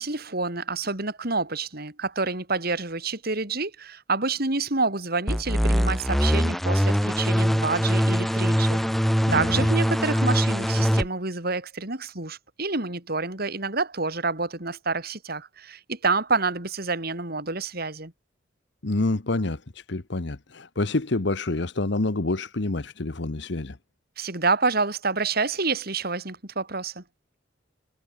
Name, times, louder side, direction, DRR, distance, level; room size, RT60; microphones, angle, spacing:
voice 1, 0.0-8.8 9.3-18.1 24.2-27.0, right 3 dB, 55° right, 4.1 m, -28 dB
sound 1, 5.3-11.1, equal, ahead, 1.0 m, -22 dB
voice 2, 9.3-9.7 18.8-23.8, left 2 dB, 65° left, 1.1 m, -27 dB
head